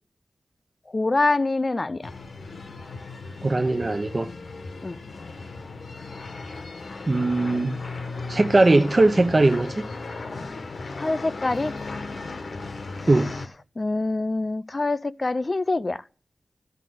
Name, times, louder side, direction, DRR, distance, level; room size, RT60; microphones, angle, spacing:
voice 1, 0.9-2.1 4.8-5.0 11.0-11.7 13.0-13.1 13.8-16.0, left 2 dB, 40° left, 0.5 m, -25 dB
sound 1, 2.0-13.5, left 3 dB, 70° left, 1.2 m, -36 dB
voice 2, 3.4-4.3 7.1-7.8 8.3-9.9 13.1-13.4, right 2 dB, 35° right, 0.6 m, -20 dB
12.5 x 5.3 x 7.7 m
wide cardioid pair, 65°, 0 cm